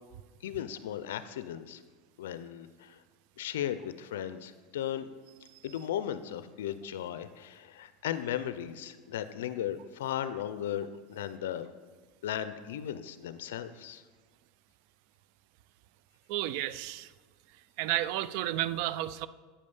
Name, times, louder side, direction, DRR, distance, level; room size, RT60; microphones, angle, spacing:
voice 1, 0.4-1.8 2.2-3.0 3.4-5.1 5.6-11.7 12.2-14.0, left 10 dB, 85° left, 12 dB, 0.4 m, -36 dB
voice 2, 16.3-17.1 17.8-19.3, right 14 dB, 65° right, 16 dB, 0.3 m, -32 dB
8.4 x 5.3 x 5.4 m, 1.4 s
supercardioid pair, 110°, 0 cm